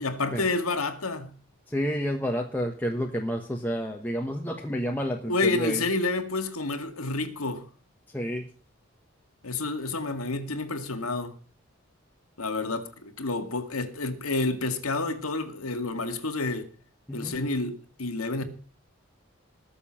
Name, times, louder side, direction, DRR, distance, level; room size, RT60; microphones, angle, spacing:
voice 1, 0.0-1.4 5.3-7.7 9.4-11.3 12.4-16.7 17.1-18.4, left 3 dB, 90° left, 2.1 m, -29 dB
voice 2, 1.7-5.8 8.1-8.4 17.1-17.3, equal, 10° left, 1.3 m, -30 dB
20.5 x 7.1 x 5.8 m
head